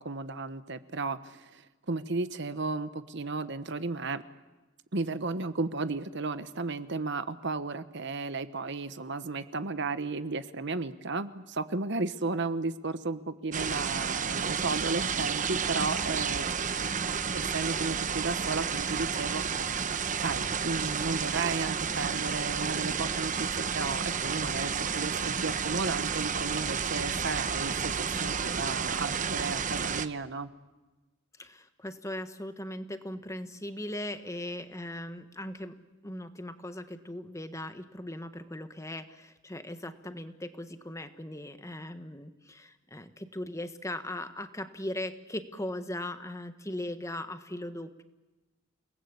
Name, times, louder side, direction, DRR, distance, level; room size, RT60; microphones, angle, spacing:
voice 1, 0.0-4.2 4.9-16.7 17.3-19.6 20.2-30.5, right 3 dB, 60° right, 12 dB, 1.2 m, -34 dB
sound 1, 13.5-30.1, right 6 dB, 40° right, 1.0 m, -31 dB
voice 2, 31.4-35.8 36.0-48.0, left 1 dB, 15° left, 9 dB, 1.4 m, -39 dB
29.0 x 19.5 x 8.5 m, 1.1 s
head